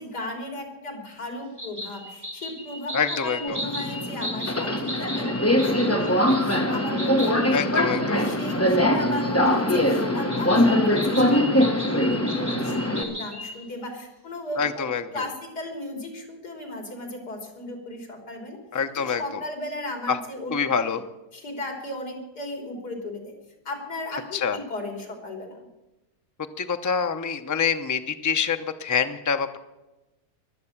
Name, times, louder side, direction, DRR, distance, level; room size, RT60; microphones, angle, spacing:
voice 1, 0.0-14.9 15.1-18.6 18.9-20.8 21.3-23.3 23.7-25.6, left 1 dB, 80° left, 2 dB, 4.0 m, -35 dB
sound 1, 1.6-7.6 10.3-13.5, left 1 dB, 15° right, 2.9 m, -36 dB
voice 2, 2.9-3.6 7.5-8.3 14.6-15.2 18.7-19.2 20.1-20.2 20.5-21.0 24.3-24.6 26.6-29.6, left 6 dB, 25° left, 7 dB, 0.4 m, -26 dB
Subway metro underground, 3.5-13.0, left 1 dB, 10° left, 1.2 m, -22 dB
22.0 x 7.8 x 7.2 m, 1.0 s
omnidirectional pair, 1.7 m